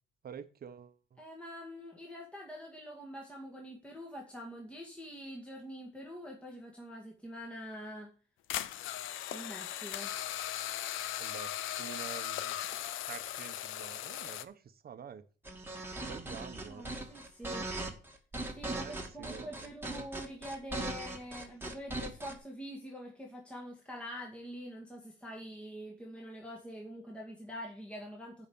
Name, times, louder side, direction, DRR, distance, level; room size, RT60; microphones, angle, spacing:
voice 1, 0.2-1.2 11.2-11.5 11.8-12.6 13.1-15.2 16.0-16.9 18.7-19.7, right 7 dB, 50° right, 1.1 m, -48 dB
voice 2, 1.2-8.1 9.3-10.1 16.5-17.7 18.5-28.5, equal, 5° left, 2.1 m, -45 dB
sound 1, 8.5-14.4, left 12 dB, 85° left, 0.6 m, -38 dB
sound 2, 15.4-22.3, right 2 dB, 10° right, 2.1 m, -39 dB
8.3 x 5.2 x 7.1 m
cardioid pair, 90°, 20 cm